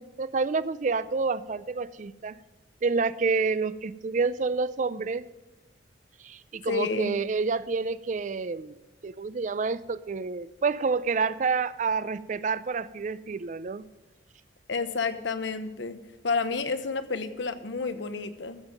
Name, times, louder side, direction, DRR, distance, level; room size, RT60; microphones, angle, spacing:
voice 1, 0.0-2.4 2.8-5.2 6.2-8.7 9.0-13.9, right 4 dB, 45° right, 0.4 m, -28 dB
voice 2, 6.7-7.1 14.7-16.0 16.2-18.6, left 4 dB, 85° left, 0.9 m, -30 dB
14.5 x 7.1 x 5.3 m
head